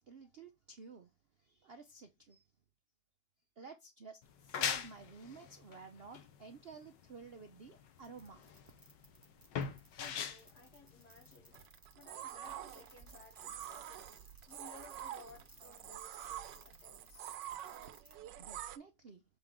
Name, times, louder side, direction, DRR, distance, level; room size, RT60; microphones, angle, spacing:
voice 1, 0.0-2.5 3.6-8.4 18.0-19.2, right 5 dB, 55° right, 0.6 m, -53 dB
sound 1, 4.2-11.6, left 7 dB, 85° left, 1.6 m, -41 dB
sound 2, 8.0-18.1, right 1 dB, 10° right, 1.6 m, -61 dB
voice 2, 9.9-14.1 14.5-17.3, left 3 dB, 65° left, 2.6 m, -59 dB
sound 3, 11.5-18.8, right 11 dB, 85° right, 1.4 m, -47 dB
7.4 x 4.3 x 3.6 m
omnidirectional pair, 1.9 m